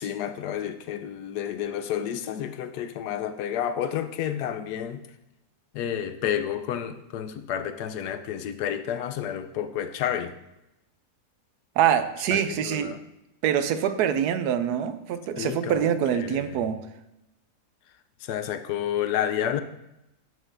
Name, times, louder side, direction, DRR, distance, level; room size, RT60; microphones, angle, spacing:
voice 1, 0.0-5.1 5.7-10.3 12.3-13.0 15.4-16.7 18.2-19.6, left 9 dB, 85° left, 10 dB, 1.2 m, -30 dB
voice 2, 11.8-13.0 13.4-16.8, right 9 dB, 85° right, 10 dB, 1.1 m, -25 dB
11.0 x 6.6 x 2.6 m, 0.92 s
omnidirectional pair, 1.7 m